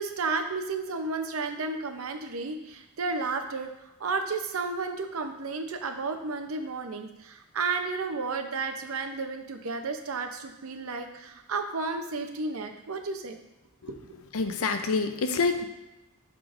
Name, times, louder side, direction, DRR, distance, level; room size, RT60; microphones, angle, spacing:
voice 1, 0.0-3.7 4.0-13.4, right 4 dB, 65° right, 6 dB, 0.7 m, -32 dB
voice 2, 14.3-15.7, left 4 dB, 70° left, 7 dB, 0.6 m, -26 dB
11.0 x 3.8 x 2.5 m, 0.97 s
head